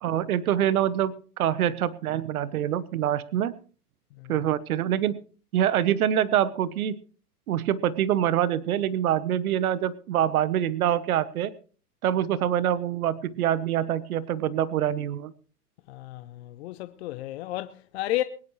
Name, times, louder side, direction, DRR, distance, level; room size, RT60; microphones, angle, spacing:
voice 1, 0.0-3.5 4.3-5.2 5.5-7.0 7.5-11.5 12.0-15.3, right 10 dB, 65° right, 1.1 m, -25 dB
voice 2, 15.9-18.2, left 15 dB, 45° left, 0.7 m, -32 dB
22.0 x 11.0 x 3.2 m
hypercardioid pair, 145°, 46 cm